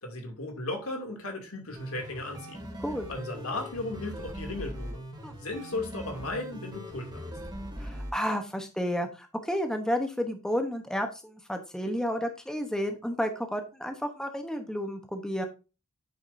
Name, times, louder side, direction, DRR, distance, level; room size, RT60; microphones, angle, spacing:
voice 1, 0.0-2.7 3.1-5.0 5.4-7.3, left 2 dB, 70° left, 2.6 m, -36 dB
sound 1, 1.8-8.1, equal, 20° right, 2.4 m, -40 dB
voice 2, 7.8-15.5, equal, 5° left, 0.9 m, -31 dB
8.8 x 7.0 x 2.6 m
head